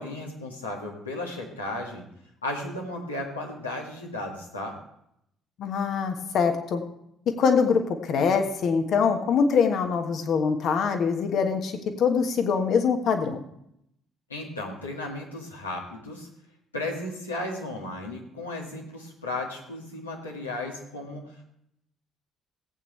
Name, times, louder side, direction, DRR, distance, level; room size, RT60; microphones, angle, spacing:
voice 1, 0.0-2.0 2.4-4.8 14.3-16.3 16.7-21.4, left 2 dB, 90° left, -2 dB, 2.1 m, -35 dB
voice 2, 5.6-6.8 7.4-13.4, left 6 dB, 55° left, 5 dB, 1.5 m, -24 dB
16.0 x 8.7 x 3.3 m, 0.74 s
figure-of-eight pair, 50°, 0 cm